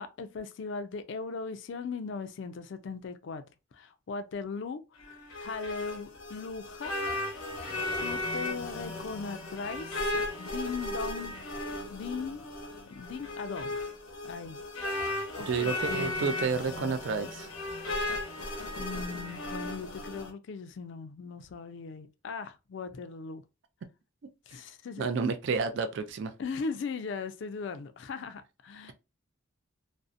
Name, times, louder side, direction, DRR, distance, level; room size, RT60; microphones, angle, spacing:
voice 1, 0.0-3.4 3.7-6.9 7.2-7.4 8.0-11.3 11.9-12.4 12.9-13.9 14.2-14.6 14.9-16.2 18.7-23.4 24.5-25.1 26.4-28.9, left 4 dB, 60° left, 0.3 m, -39 dB
sound 1, 5.0-20.3, left 2 dB, 90° left, 0.7 m, -36 dB
voice 2, 15.5-17.5 25.0-26.3, right 5 dB, 60° right, 0.3 m, -30 dB
2.6 x 2.0 x 2.4 m
head